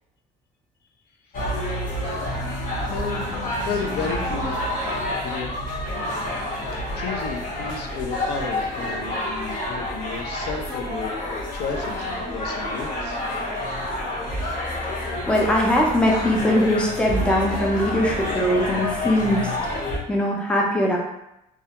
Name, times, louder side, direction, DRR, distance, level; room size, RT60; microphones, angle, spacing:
sound 1, 1.3-20.0, left 1 dB, 50° left, 0.8 m, -28 dB
voice 1, 2.8-3.3 3.6-4.6 5.2-6.2 6.9-11.1 11.5-13.2, left 5 dB, 75° left, 2 dB, 0.4 m, -32 dB
voice 2, 15.3-19.7 20.1-21.0, equal, 5° left, -1 dB, 0.4 m, -21 dB
2.3 x 2.0 x 2.8 m, 0.85 s
cardioid pair, 110°, 17 cm